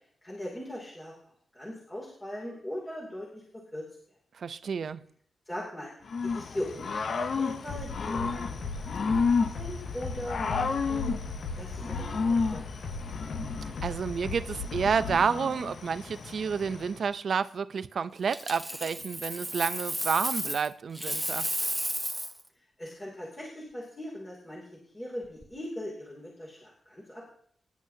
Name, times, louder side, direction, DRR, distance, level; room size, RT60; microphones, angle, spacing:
voice 1, 0.2-1.1 1.5-3.8 5.5-5.9 6.2-11.1 11.6-12.6 22.8-24.7 24.9-27.3, left 1 dB, 20° left, 2.6 m, -40 dB
voice 2, 4.3-5.0 13.8-21.5, right 6 dB, 55° right, 0.5 m, -30 dB
Growling / Cricket, 6.1-17.0, left 5 dB, 50° left, 0.7 m, -32 dB
sound 1, 7.7-15.2, left 3 dB, 90° left, 1.5 m, -37 dB
Coin (dropping), 18.3-20.7 20.9-22.4 25.2-25.4, equal, ahead, 0.9 m, -33 dB
24.5 x 10.5 x 2.8 m
wide cardioid pair, 165°, 0 cm